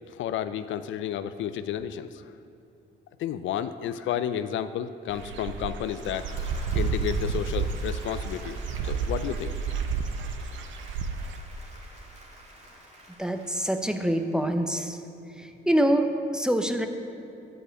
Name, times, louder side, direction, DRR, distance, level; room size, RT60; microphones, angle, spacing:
voice 1, 0.1-2.2 3.2-8.6 8.8-9.5, left 10 dB, 75° left, 12 dB, 0.4 m, -32 dB
Dog / Bird, 5.1-11.4, right 5 dB, 70° right, 0.6 m, -31 dB
Applause / Crowd, 5.7-14.8, right 1 dB, 35° right, 2.2 m, -49 dB
voice 2, 13.2-15.0 15.4-16.9, right 1 dB, 5° right, 7 dB, 0.7 m, -25 dB
10.0 x 4.9 x 8.0 m, 2.7 s
cardioid pair, 90°, 20 cm